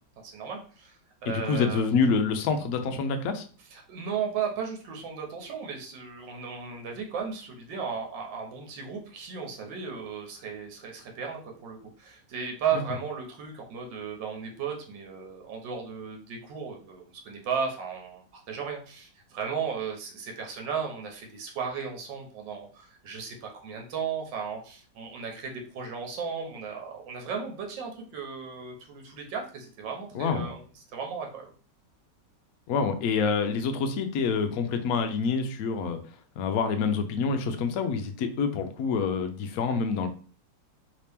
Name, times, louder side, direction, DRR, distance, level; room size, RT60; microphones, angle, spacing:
voice 1, 0.2-1.9 3.7-30.6 30.9-31.5, right 6 dB, 80° right, 2 dB, 1.5 m, -35 dB
voice 2, 1.3-3.5 30.1-30.5 32.7-36.0 36.4-40.1, left 5 dB, 70° left, 7 dB, 0.9 m, -27 dB
3.2 x 2.8 x 3.4 m, 0.41 s
omnidirectional pair, 2.0 m